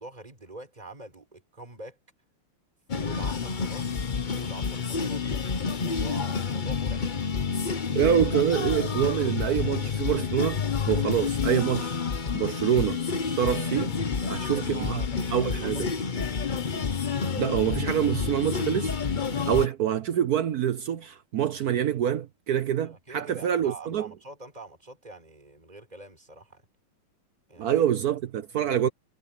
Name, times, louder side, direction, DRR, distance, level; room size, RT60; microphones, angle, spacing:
voice 1, 0.0-2.0 2.9-3.9 4.3-5.2 5.7-7.1 7.7-8.0 14.2-16.3 22.8-26.6 27.5-27.7 28.7-28.8, right 2 dB, 15° right, 4.7 m, -44 dB
sound 1, 2.9-19.7, left 5 dB, 90° left, 0.4 m, -29 dB
voice 2, 7.9-12.0 12.3-13.0 13.4-13.9 14.3-15.0 15.3-15.9 17.4-19.0 19.5-24.1 27.6-28.9, right 10 dB, 70° right, 0.9 m, -26 dB
omnidirectional pair, 2.4 m